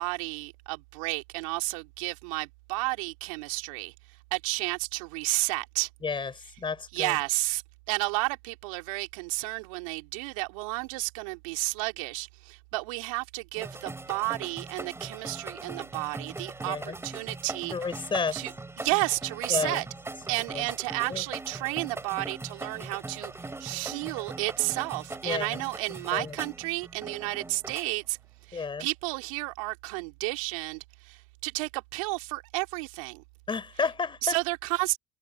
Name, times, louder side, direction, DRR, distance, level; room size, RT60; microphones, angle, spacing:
voice 1, 0.0-3.9 4.3-5.9 6.9-7.6 7.9-18.1 18.3-18.5 18.8-19.9 20.3-28.2 28.5-33.2 34.2-35.0, right 26 dB, 75° right, 2.9 m, -32 dB
voice 2, 6.6-7.2 16.7-17.0 17.7-18.4 19.5-19.8 20.5-20.6 21.1-21.2 25.2-25.6 26.1-26.4 28.5-28.9 33.5-34.4, left 5 dB, 30° left, 4.4 m, -31 dB
sound 1, 13.6-27.8, right 2 dB, 15° right, 5.0 m, -40 dB
hypercardioid pair, 65°, 17 cm